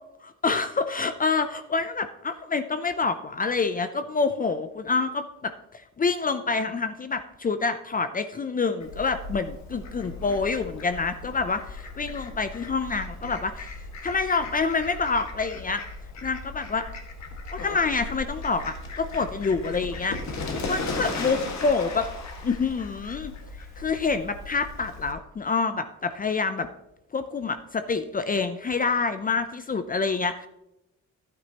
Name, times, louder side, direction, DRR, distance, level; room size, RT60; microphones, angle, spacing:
voice 1, 0.2-13.7 14.0-15.8 16.2-16.8 17.5-22.1 22.4-23.3 23.8-26.7 27.1-30.5, left 4 dB, 30° left, 10 dB, 0.5 m, -27 dB
Fowl, 8.8-25.1, left 3 dB, 65° left, 1.8 m, -37 dB
11.5 x 9.5 x 3.0 m, 0.90 s
cardioid pair, 90°, 30 cm